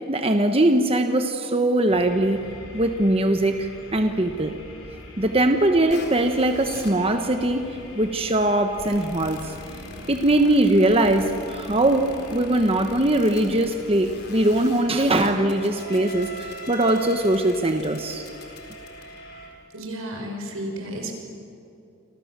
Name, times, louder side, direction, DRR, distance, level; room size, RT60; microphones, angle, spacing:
voice 1, 0.1-2.4 2.7-4.5 5.2-7.7 8.0-9.4 10.0-18.3, right 1 dB, 30° right, 6 dB, 1.2 m, -21 dB
sound 1, 1.9-19.5, left 2 dB, 90° left, 5.4 m, -45 dB
sound 2, 5.9-19.5, left 1 dB, 50° left, 4.2 m, -41 dB
voice 2, 19.7-21.1, right 1 dB, 90° right, 2 dB, 5.8 m, -32 dB
29.5 x 25.0 x 7.5 m, 2.7 s
head